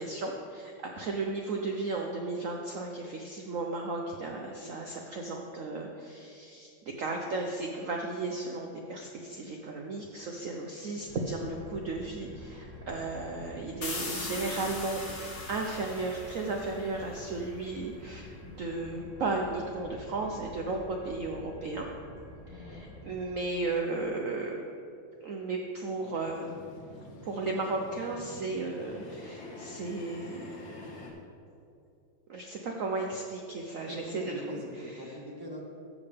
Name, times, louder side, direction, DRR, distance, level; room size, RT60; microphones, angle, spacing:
voice 1, 0.0-6.7 7.0-15.0 15.5-21.9 22.5-24.6 25.2-26.5 27.2-30.5 32.3-34.6 35.1-35.2, right 3 dB, 70° right, 1 dB, 0.7 m, -35 dB
sound 1, 11.1-23.3, left 1 dB, 15° left, 1.3 m, -48 dB
sound 2, 13.8-17.4, left 2 dB, 40° left, 1.6 m, -39 dB
voice 2, 22.5-22.9 33.9-35.6, equal, 20° right, -1 dB, 0.7 m, -42 dB
sound 3, 26.0-31.1, left 2 dB, 75° left, 2.1 m, -47 dB
13.0 x 7.2 x 3.5 m, 2.6 s
omnidirectional pair, 2.2 m